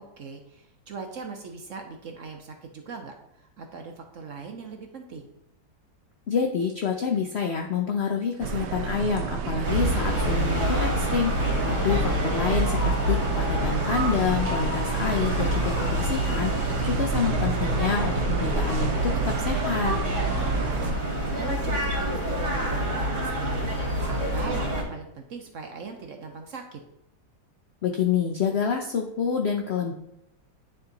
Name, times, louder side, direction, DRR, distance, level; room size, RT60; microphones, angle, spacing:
voice 1, 0.0-3.1 3.6-5.3 20.1-26.8, right 5 dB, 60° right, 4 dB, 0.9 m, -40 dB
voice 2, 6.3-20.0 27.8-29.9, left 6 dB, 75° left, 2 dB, 0.5 m, -28 dB
sound 1, 8.4-20.9, right 8 dB, 75° right, 1.2 m, -31 dB
sound 2, 9.6-24.8, equal, 40° right, 2.2 m, -27 dB
9.5 x 3.6 x 4.0 m, 0.81 s
omnidirectional pair, 1.9 m